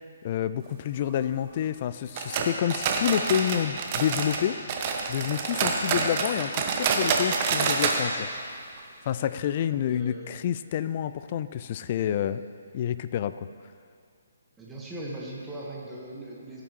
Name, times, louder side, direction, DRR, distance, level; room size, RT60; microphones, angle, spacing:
voice 1, 0.2-4.6 5.1-8.3 9.1-12.4 12.7-13.5, left 10 dB, 35° left, 14 dB, 0.3 m, -28 dB
sound 1, 2.2-4.4 4.7-8.0 8.3-8.4 8.8-8.9 9.4-9.5, right 5 dB, 30° right, 1.0 m, -27 dB
voice 2, 9.9-10.3 14.6-16.6, right 1 dB, 10° right, -4 dB, 1.5 m, -39 dB
16.5 x 8.6 x 3.1 m, 2.3 s
figure-of-eight pair, 135°, 0 cm